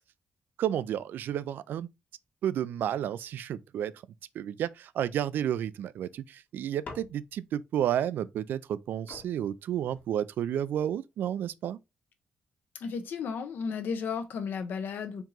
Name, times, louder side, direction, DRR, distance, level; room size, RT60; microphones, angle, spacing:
voice 1, 0.6-1.9 2.4-3.9 4.4-11.8, right 10 dB, 85° right, 0.3 m, -31 dB
sound 1, 6.8-7.6 8.7-8.8 9.1-10.6 11.3-11.7, left 3 dB, 50° left, 1.4 m, -48 dB
voice 2, 12.8-15.2, left 6 dB, 80° left, 0.8 m, -34 dB
4.6 x 2.9 x 3.7 m
wide cardioid pair, 155°, 3 cm